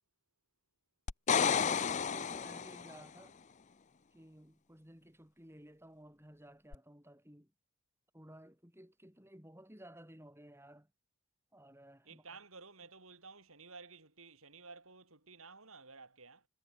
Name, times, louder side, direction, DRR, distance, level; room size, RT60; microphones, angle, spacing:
sound 1, 1.1-3.0 6.7-6.8, left 6 dB, 35° left, 0.5 m, -31 dB
voice 1, 1.4-3.4 4.1-7.5 8.1-10.9 11.5-12.4, right 1 dB, 10° right, 7.3 m, -56 dB
voice 2, 12.0-16.5, right 4 dB, 70° right, 6.7 m, -54 dB
head